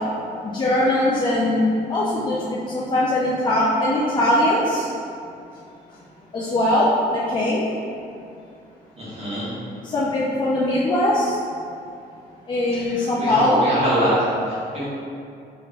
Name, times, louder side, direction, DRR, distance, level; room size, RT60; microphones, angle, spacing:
voice 1, 0.4-4.9 6.3-7.6 9.9-11.4 12.5-13.7, left 1 dB, 25° left, -6 dB, 0.4 m, -21 dB
voice 2, 9.0-9.5 12.7-14.9, equal, 35° right, -10 dB, 1.2 m, -25 dB
3.6 x 3.1 x 2.4 m, 2.5 s
cardioid pair, 130°, 17 cm